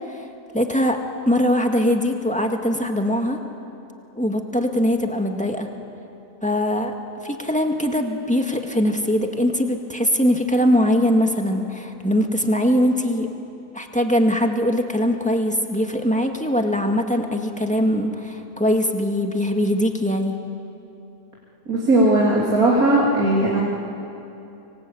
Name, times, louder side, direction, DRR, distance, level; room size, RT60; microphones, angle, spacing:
voice 1, 0.5-1.0 1.3-3.4 4.1-5.7 6.4-6.9 7.2-13.3 13.7-20.3, equal, 5° left, 3 dB, 1.9 m, -21 dB
voice 2, 21.7-23.6, right 1 dB, 65° right, -4 dB, 3.6 m, -18 dB
26.5 x 24.0 x 8.5 m, 2.8 s
omnidirectional pair, 1.7 m